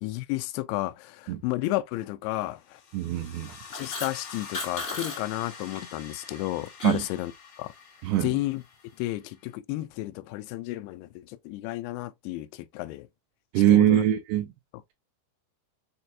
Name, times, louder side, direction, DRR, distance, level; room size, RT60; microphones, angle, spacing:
voice 1, 0.0-2.8 3.7-7.3 7.6-7.7 8.2-8.6 9.0-13.1 13.7-14.0, left 17 dB, 85° left, 2.4 m, -32 dB
sound 1, 2.6-9.5, left 6 dB, 65° left, 2.9 m, -46 dB
voice 2, 2.9-3.5 6.8-7.0 8.0-8.3 13.5-14.5, right 12 dB, 80° right, 2.6 m, -22 dB
sound 2, 3.5-5.2 5.4-5.8 6.2-7.1, left 2 dB, 30° left, 1.4 m, -37 dB
6.5 x 2.3 x 2.7 m
omnidirectional pair, 4.8 m